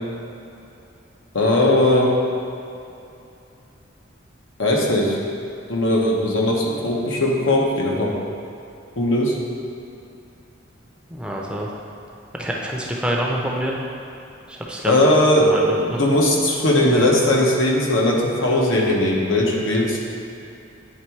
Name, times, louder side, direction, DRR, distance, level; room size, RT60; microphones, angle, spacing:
voice 1, 1.3-2.1 4.6-5.2 5.7-8.1 9.0-9.4 14.8-15.5 15.8-18.2 18.4-20.0, left 1 dB, 85° left, -2 dB, 1.1 m, -18 dB
voice 2, 11.1-11.7 12.4-13.7 14.5-14.9 15.4-16.0, right 1 dB, 5° right, -3 dB, 0.5 m, -26 dB
8.8 x 3.5 x 4.6 m, 2.7 s
head